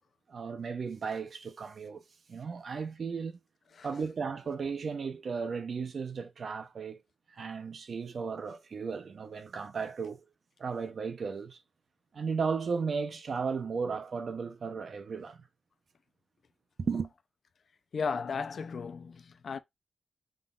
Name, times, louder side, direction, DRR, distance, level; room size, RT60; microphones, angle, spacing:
voice 1, 0.3-2.0 2.3-3.4 3.8-7.0 7.3-10.2 10.6-11.6 12.1-15.4 16.8-17.1, right 5 dB, 55° right, 0.8 m, -35 dB
voice 2, 17.9-19.6, left 5 dB, 60° left, 0.5 m, -35 dB
5.5 x 3.7 x 2.4 m
wide cardioid pair, 160°, 0 cm